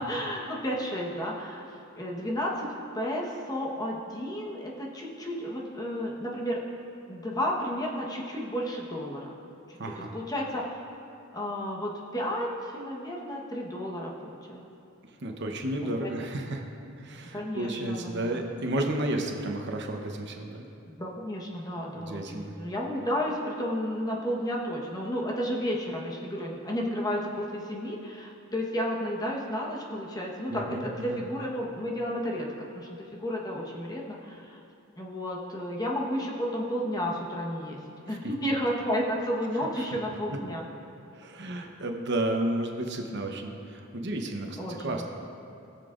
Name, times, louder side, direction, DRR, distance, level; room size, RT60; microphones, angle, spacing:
voice 1, 0.0-1.7 1.9-6.6 7.1-9.3 9.7-10.6 11.3-14.6 15.8-16.1 17.3-18.4 20.9-34.6 35.0-40.6 44.6-45.0, equal, 20° left, -2 dB, 1.2 m, -32 dB
voice 2, 9.8-10.1 15.2-16.6 17.0-20.7 21.9-22.5 30.5-31.2 39.8-39.9 41.1-45.0, right 1 dB, 55° right, 3 dB, 0.9 m, -32 dB
20.0 x 7.0 x 2.5 m, 2.6 s
head